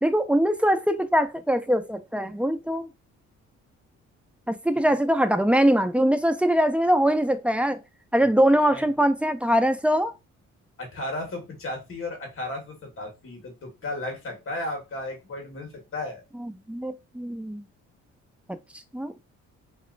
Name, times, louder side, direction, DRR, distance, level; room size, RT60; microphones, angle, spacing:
voice 1, 0.0-2.9 4.5-7.8 8.1-10.1 16.4-17.6 18.9-19.1, equal, 5° right, 0.3 m, -22 dB
voice 2, 10.8-16.2, left 2 dB, 45° left, 1.5 m, -34 dB
3.0 x 2.9 x 2.5 m
cardioid pair, 90°, 30 cm